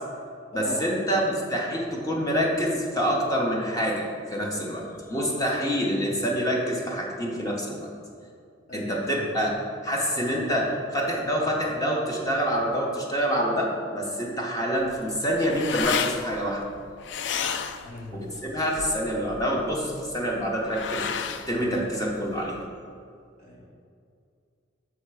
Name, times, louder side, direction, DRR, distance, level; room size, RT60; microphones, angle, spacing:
voice 1, 0.5-7.9 8.7-9.6 9.8-16.6 18.1-21.1 21.5-22.6, equal, 20° left, -2 dB, 0.8 m, -26 dB
voice 2, 8.7-9.2 17.8-18.1 23.4-23.7, left 1 dB, 45° left, -4 dB, 1.5 m, -39 dB
sound 1, 14.8-22.7, left 7 dB, 65° left, 0.3 m, -33 dB
6.4 x 3.5 x 4.8 m, 2.3 s
head